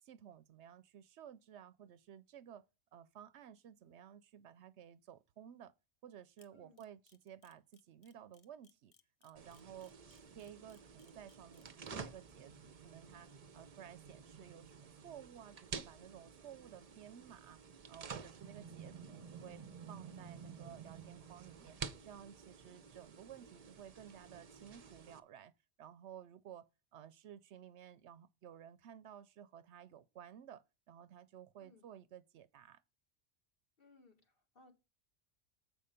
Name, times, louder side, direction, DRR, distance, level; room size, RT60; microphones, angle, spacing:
voice 1, 0.0-2.6 2.9-5.7 6.0-8.9 9.2-9.9 10.3-13.3 13.5-17.6 17.9-19.6 19.9-25.5 25.8-32.8, right 9 dB, 70° right, 0.8 m, -55 dB
Camera, 6.4-11.9, left 5 dB, 35° left, 0.7 m, -68 dB
voice 2, 6.5-6.9 31.6-31.8 33.8-34.7, left 3 dB, 50° left, 1.9 m, -65 dB
sound 1, 9.4-25.2, right 6 dB, 40° right, 0.6 m, -51 dB
7.6 x 5.6 x 5.0 m
omnidirectional pair, 1.2 m